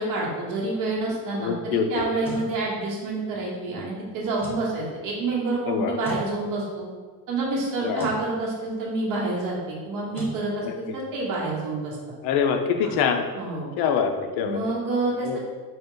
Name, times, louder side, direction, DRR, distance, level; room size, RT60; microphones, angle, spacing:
voice 1, 0.0-6.8 7.3-12.0 12.8-12.9 13.3-13.7 14.4-15.4, right 2 dB, 60° right, -5 dB, 1.1 m, -28 dB
voice 2, 1.4-2.1 5.7-6.0 7.8-8.1 10.6-10.7 12.2-13.2 13.8-14.6 15.2-15.4, left 7 dB, 75° left, 6 dB, 0.5 m, -24 dB
sound 1, 2.0-2.5 4.3-4.7 6.0-6.3 7.9-8.2 10.1-10.4, equal, 5° left, 0.6 m, -37 dB
3.9 x 2.3 x 3.7 m, 1.5 s
cardioid pair, 155°, 38 cm